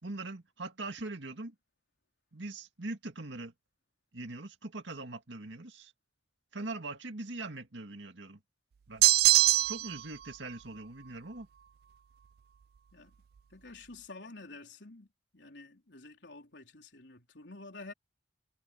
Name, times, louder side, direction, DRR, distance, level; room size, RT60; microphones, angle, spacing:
voice 1, 0.0-1.5 2.3-3.5 4.1-5.9 6.5-8.4 8.9-9.0 9.7-11.5, right 2 dB, 85° right, 2.1 m, -41 dB
sound 1, 9.0-10.0, right 16 dB, 60° right, 0.3 m, -22 dB
voice 2, 13.5-15.1 15.3-17.9, left 3 dB, 75° left, 3.7 m, -49 dB
head